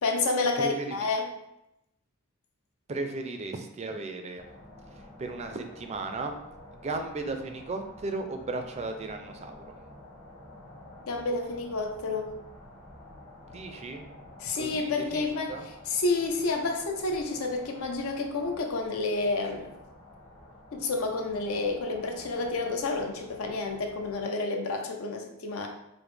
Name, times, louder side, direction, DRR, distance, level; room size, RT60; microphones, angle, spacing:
voice 1, 0.0-1.3 11.1-12.3 14.4-15.6 15.9-19.7 20.7-25.7, left 3 dB, 75° left, 3 dB, 0.6 m, -29 dB
voice 2, 0.6-1.0 2.9-4.4 4.9-6.4 6.7-9.8 13.5-14.0 14.5-15.7, right 3 dB, 30° right, 6 dB, 0.3 m, -36 dB
sound 1, 4.4-24.3, left 1 dB, 50° left, 1.5 m, -50 dB
4.9 x 2.0 x 3.2 m, 0.85 s
head